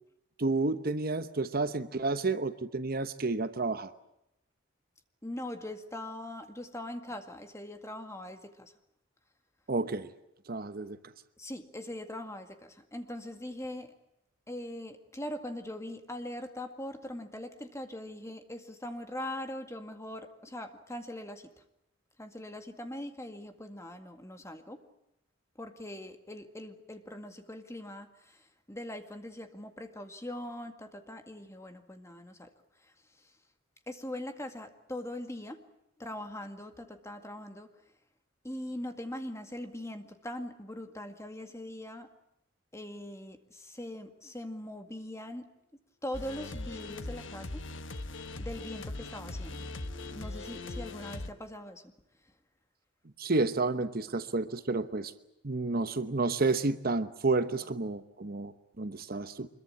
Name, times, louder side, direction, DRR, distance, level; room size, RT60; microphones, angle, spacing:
voice 1, 0.4-3.9 9.7-10.1 10.5-11.1 53.2-55.1 55.4-59.5, right 3 dB, 50° right, 11 dB, 1.0 m, -30 dB
voice 2, 5.2-8.7 11.4-13.9 14.5-21.6 22.2-24.8 25.6-32.5 32.8-33.3 33.9-35.6 36.0-37.7 38.4-42.1 42.7-45.5 46.0-47.7 48.4-49.6 50.1-51.9, left 1 dB, 15° left, 6 dB, 2.0 m, -41 dB
sound 1, 46.1-51.3, left 2 dB, 70° left, 1.3 m, -40 dB
sound 2, 49.5-51.1, left 6 dB, 30° right, 7.5 m, -54 dB
25.0 x 22.0 x 8.6 m, 0.82 s
head